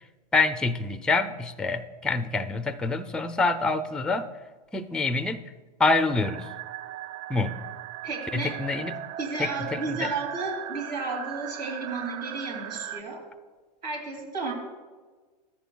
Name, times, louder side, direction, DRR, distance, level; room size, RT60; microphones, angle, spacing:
voice 1, 0.3-4.3 4.7-5.4 5.8-6.5 7.3-7.6 8.3-8.9 9.4-10.1, left 3 dB, 5° left, 10 dB, 0.4 m, -26 dB
sound 1, 6.2-13.0, right 12 dB, 55° right, 0.5 m, -38 dB
voice 2, 8.0-8.5 9.2-13.2 13.8-14.5, right 3 dB, 80° right, 0 dB, 2.7 m, -33 dB
14.0 x 10.5 x 2.3 m, 1.4 s
hypercardioid pair, 110°, 21 cm